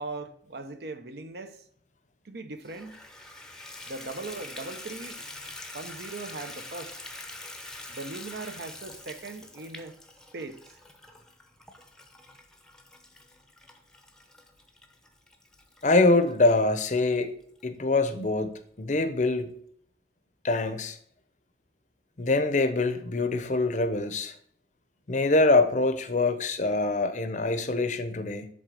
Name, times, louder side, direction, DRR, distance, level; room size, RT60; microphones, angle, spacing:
voice 1, 0.0-1.6 2.2-3.0 3.8-5.2 5.7-6.9 7.9-10.0 10.3-10.6, right 3 dB, 60° right, 0.7 m, -39 dB
Water tap faucet / Bathtub (filling or washing), 2.6-17.0 17.6-17.7 18.2-18.3 18.6-18.7, left 2 dB, 5° left, 0.7 m, -45 dB
voice 2, 15.8-17.3 17.6-19.5 20.4-21.0 22.2-24.3 25.1-28.5, left 2 dB, 40° left, 0.6 m, -24 dB
8.1 x 3.7 x 6.3 m
head